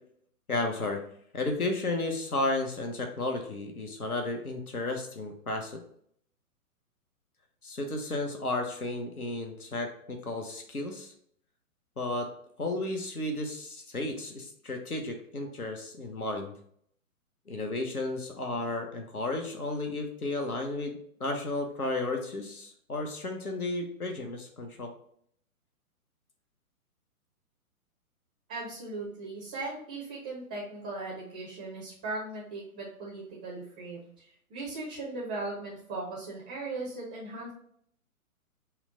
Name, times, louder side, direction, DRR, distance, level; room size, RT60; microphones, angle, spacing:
voice 1, 0.5-1.0 1.3-5.8 7.6-11.1 12.0-12.3 12.6-16.5 17.5-24.9, left 2 dB, 80° left, 4 dB, 1.0 m, -33 dB
voice 2, 28.5-37.5, right 2 dB, 5° right, -7 dB, 0.4 m, -38 dB
5.6 x 2.2 x 3.9 m, 0.65 s
figure-of-eight pair, 125°, 44 cm